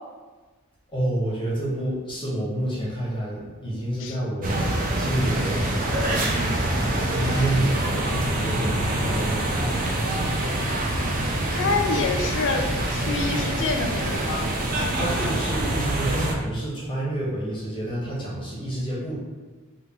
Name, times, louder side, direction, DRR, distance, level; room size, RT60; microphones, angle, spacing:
voice 1, 0.9-6.4 6.7-10.2 14.9-19.2, right 1 dB, 25° left, -6 dB, 0.7 m, -29 dB
sound 1, 4.4-16.3, right 1 dB, 40° right, 0.4 m, -25 dB
voice 2, 11.5-14.5, left 4 dB, 60° left, 4 dB, 0.4 m, -27 dB
3.4 x 2.2 x 3.3 m, 1.3 s
head